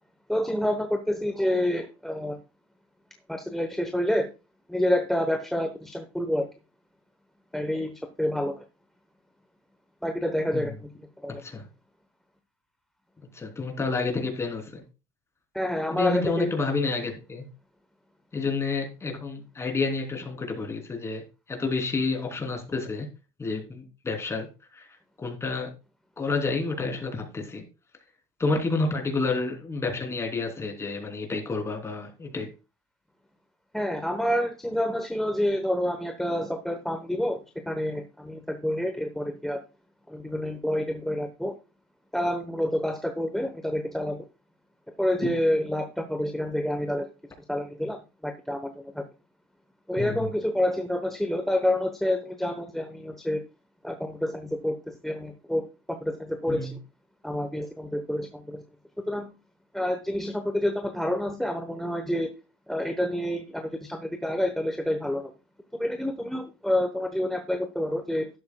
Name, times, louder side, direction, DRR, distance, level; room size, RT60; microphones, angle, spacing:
voice 1, 0.3-2.4 3.3-4.3 4.7-6.5 7.5-8.6 10.0-11.3 15.5-16.6 33.7-39.6 40.1-41.6 42.1-44.2 45.0-47.1 47.5-49.0 49.9-53.4 53.8-56.8 57.2-58.6 59.1-59.3 59.7-62.3 62.7-65.3 65.7-68.3, left 1 dB, ahead, 8 dB, 1.0 m, -28 dB
voice 2, 11.3-11.6 13.3-14.8 15.9-17.5 18.3-21.2 21.5-23.1 23.4-24.5 24.7-24.9 25.2-25.7 26.2-27.6 28.4-32.5 50.0-50.3 56.5-56.7, left 3 dB, 20° left, 3 dB, 3.3 m, -29 dB
12.0 x 10.5 x 2.3 m, 0.30 s
supercardioid pair, 115°, 13 cm